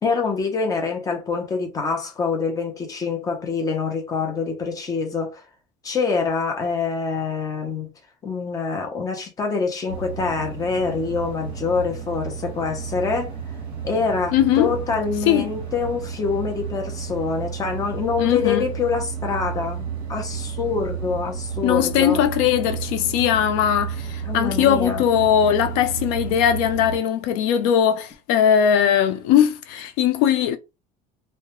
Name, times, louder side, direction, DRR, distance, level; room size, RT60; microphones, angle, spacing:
voice 1, 0.0-5.4 5.8-7.9 8.2-13.3 13.8-22.2 24.3-25.0, left 5 dB, 20° left, 0.6 m, -25 dB
sound 1, 9.9-27.0, right 7 dB, 30° right, 0.9 m, -32 dB
voice 2, 14.3-14.7 15.3-15.5 18.2-18.6 21.6-30.6, left 9 dB, 85° left, 0.4 m, -19 dB
2.2 x 2.1 x 2.9 m
cardioid pair, 160°, 18 cm